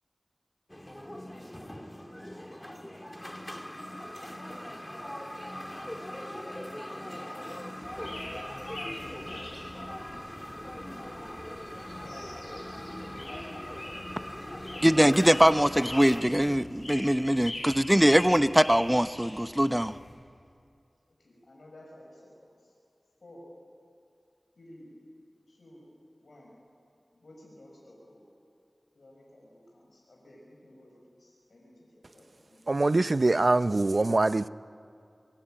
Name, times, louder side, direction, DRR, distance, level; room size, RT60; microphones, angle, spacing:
sound 1, 0.7-16.2, left 1 dB, 15° left, 2.1 m, -41 dB
sound 2, 7.8-20.1, left 1 dB, 55° left, 7.9 m, -43 dB
voice 1, 8.8-10.1 12.0-12.2 13.3-13.7 21.2-22.7 23.2-23.4 24.6-24.9 25.5-25.9 26.2-26.5 27.1-28.3 28.9-32.8, left 1 dB, 80° left, 5.5 m, -53 dB
voice 2, 14.8-20.0, equal, 10° right, 0.7 m, -22 dB
voice 3, 32.7-34.5, right 2 dB, 55° right, 0.6 m, -23 dB
24.0 x 23.5 x 8.9 m
wide cardioid pair, 45°, 0 cm